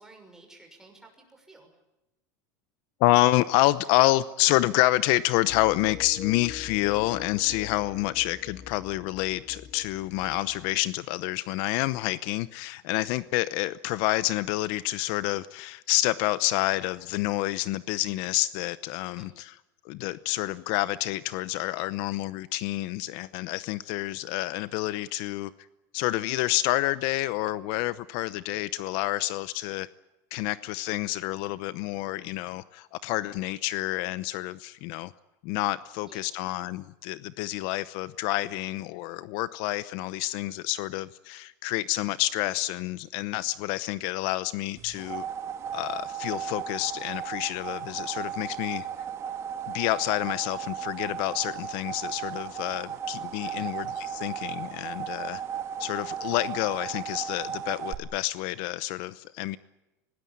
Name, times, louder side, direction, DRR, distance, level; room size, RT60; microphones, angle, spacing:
voice 1, 0.0-1.7 19.1-19.3 36.0-36.2 53.4-53.7, right 2 dB, 5° right, 2 dB, 6.1 m, -52 dB
voice 2, 3.0-19.6 19.8-25.5 25.9-29.9 30.3-35.1 35.4-45.2 45.7-48.9 49.7-55.4 55.8-59.6, left 17 dB, 55° left, 16 dB, 0.8 m, -28 dB
sound 1, 5.5-10.8, left 8 dB, 30° left, 1.2 m, -44 dB
sound 2, 44.8-57.9, right 8 dB, 30° right, 2.0 m, -35 dB
26.0 x 19.0 x 8.5 m, 0.98 s
supercardioid pair, 155°, 9 cm